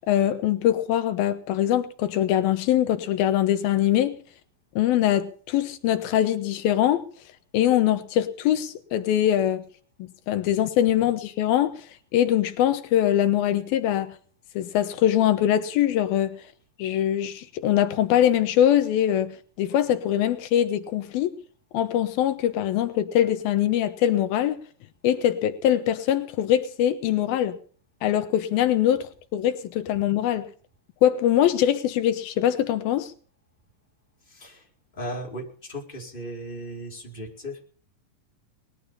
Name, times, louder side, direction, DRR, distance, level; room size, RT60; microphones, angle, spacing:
voice 1, 0.1-4.2 4.8-7.0 7.5-9.6 10.3-11.9 12.1-14.1 14.6-16.4 16.8-21.4 21.7-24.6 25.0-27.6 28.0-30.5 31.0-33.1, left 11 dB, 85° left, 2.9 m, -23 dB
voice 2, 34.2-34.7 34.9-37.6, equal, 15° left, 4.2 m, -36 dB
20.5 x 12.5 x 5.5 m
omnidirectional pair, 4.1 m